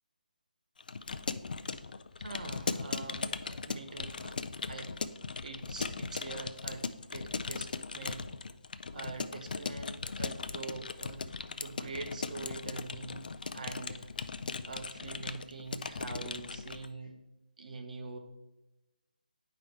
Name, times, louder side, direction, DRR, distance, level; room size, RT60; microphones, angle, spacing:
Keyboard (musical) / Computer keyboard, 0.8-16.9, left 4 dB, 65° left, 0.4 m, -38 dB
voice 1, 2.2-4.4 4.7-4.9 5.4-8.3 8.9-11.3 11.6-13.3 13.5-14.1 14.6-17.2 17.6-18.2, right 3 dB, 55° right, 6 dB, 0.9 m, -44 dB
8.9 x 4.9 x 3.2 m, 0.97 s
hypercardioid pair, 170°, 5 cm